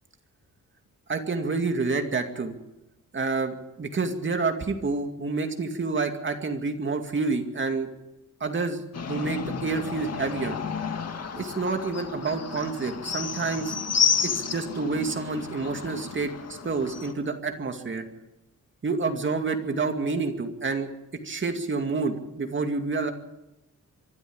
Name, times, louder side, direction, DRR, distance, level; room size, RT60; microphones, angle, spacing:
voice 1, 1.1-2.5 3.1-7.9 8.4-10.6 11.4-13.8 14.2-16.3 16.6-18.0 18.8-20.9 21.2-23.1, right 4 dB, 35° right, 5 dB, 2.3 m, -28 dB
sound 1, 8.9-17.1, left 6 dB, 50° left, 2.0 m, -31 dB
24.5 x 12.5 x 8.8 m, 0.96 s
wide cardioid pair, 150°, 32 cm